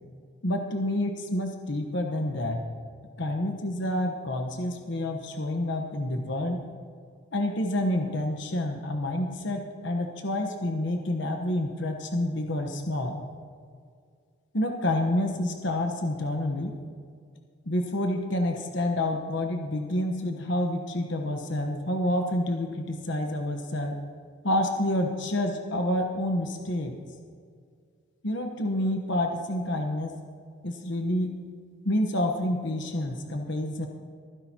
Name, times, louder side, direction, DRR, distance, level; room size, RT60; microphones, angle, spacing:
voice 1, 0.4-2.6 3.2-6.6 7.3-13.2 14.5-16.7 17.7-24.0 24.4-27.0 28.2-30.2 30.6-31.3 31.8-33.9, left 1 dB, 55° left, 4 dB, 1.1 m, -28 dB
25.0 x 10.5 x 2.9 m, 2.2 s
head